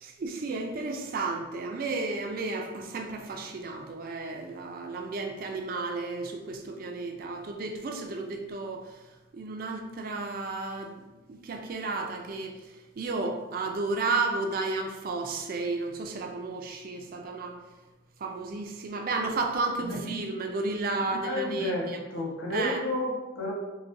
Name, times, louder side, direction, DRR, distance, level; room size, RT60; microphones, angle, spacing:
voice 1, 0.0-8.8 9.3-10.9 11.3-12.5 13.0-17.6 18.2-22.0 22.5-22.8, right 3 dB, 45° right, 3 dB, 0.3 m, -32 dB
voice 2, 21.1-23.5, left 1 dB, 75° left, -3 dB, 0.9 m, -31 dB
3.9 x 2.6 x 2.5 m, 1.1 s
head